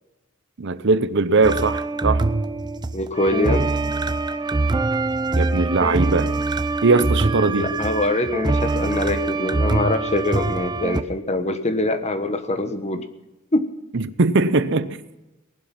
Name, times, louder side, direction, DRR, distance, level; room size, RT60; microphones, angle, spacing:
voice 1, 0.6-2.3 5.3-6.3 6.8-7.7 13.9-15.0, right 3 dB, 60° right, 0.8 m, -20 dB
sound 1, 1.4-11.0, right 3 dB, 20° right, 0.6 m, -23 dB
voice 2, 2.9-3.7 7.6-13.0 13.5-13.6, left 2 dB, 30° left, 1.2 m, -23 dB
19.0 x 12.0 x 5.9 m
head